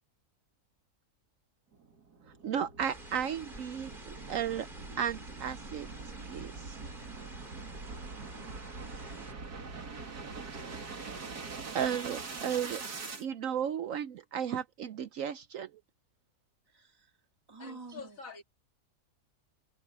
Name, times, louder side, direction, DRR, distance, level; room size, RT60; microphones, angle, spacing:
sound 1, 1.7-13.2, right 4 dB, 85° right, 2.8 m, -43 dB
voice 1, 2.4-4.7 5.0-5.9 6.2-6.8 11.7-12.8 13.2-15.7, right 8 dB, 65° right, 0.9 m, -34 dB
sound 2, 2.8-9.3, right 1 dB, 30° right, 5.7 m, -49 dB
voice 2, 8.3-9.2 9.8-11.8 16.7-17.1 17.5-18.2, right 3 dB, 15° right, 2.3 m, -52 dB
voice 3, 17.6-18.4, left 5 dB, 60° left, 2.9 m, -46 dB
omnidirectional pair, 1.6 m